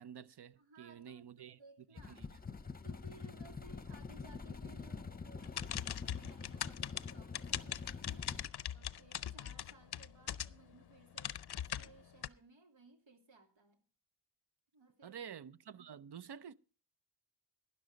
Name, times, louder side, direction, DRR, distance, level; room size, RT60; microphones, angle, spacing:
voice 1, 0.0-1.6 2.1-2.3 15.0-16.5, right 8 dB, 65° right, 0.7 m, -50 dB
voice 2, 0.6-2.3 2.8-8.4 8.7-13.8 14.7-15.2 15.7-16.3, right 3 dB, 85° right, 2.5 m, -61 dB
sound 1, 2.0-8.5, left 5 dB, 20° left, 0.7 m, -46 dB
sound 2, 5.4-10.7 11.1-12.3, left 10 dB, 60° left, 0.6 m, -41 dB
12.5 x 10.5 x 5.1 m
wide cardioid pair, 85°, 44 cm